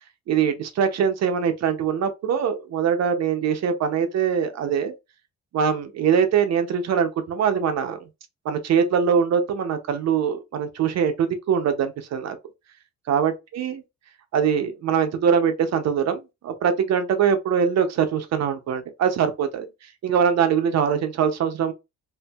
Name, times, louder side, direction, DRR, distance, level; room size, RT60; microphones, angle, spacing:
voice 1, 0.3-4.9 5.5-8.0 8.4-12.4 13.1-13.8 14.3-19.7 20.0-21.7, right 7 dB, 60° right, 0.6 m, -22 dB
2.6 x 2.5 x 2.3 m
cardioid pair, 90°, 30 cm